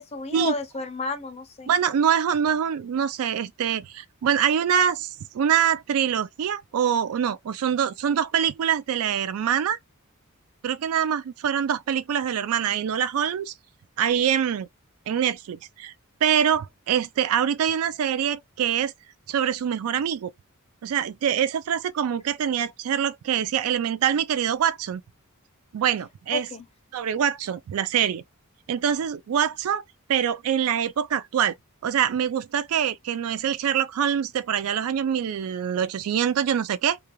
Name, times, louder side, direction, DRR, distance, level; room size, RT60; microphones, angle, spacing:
voice 1, 0.0-1.7 26.3-26.6, left 4 dB, 30° left, 0.5 m, -31 dB
voice 2, 1.7-9.8 10.6-13.5 14.0-14.7 15.1-15.9 16.2-18.9 19.3-20.3 20.8-25.0 25.7-26.5 26.9-28.2 28.7-29.8 30.1-31.6 31.8-37.0, right 8 dB, 75° right, 0.3 m, -24 dB
2.3 x 2.2 x 2.9 m
head